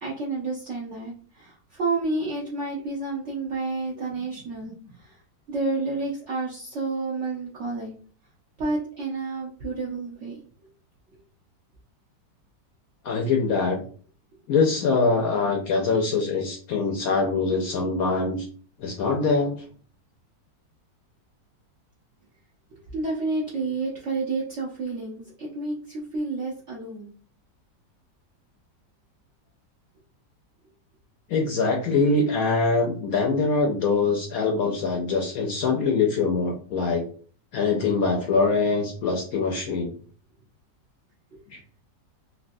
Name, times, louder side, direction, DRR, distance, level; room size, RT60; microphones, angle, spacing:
voice 1, 0.0-5.1 5.5-7.9 8.6-10.4 22.9-27.1, right 3 dB, 65° right, -4 dB, 0.7 m, -30 dB
voice 2, 13.0-13.8 14.5-18.5 18.8-19.6 31.3-37.0 37.5-39.9 41.5-41.6, left 4 dB, 70° left, 1 dB, 0.8 m, -23 dB
3.2 x 2.7 x 2.5 m, 0.43 s
omnidirectional pair, 1.9 m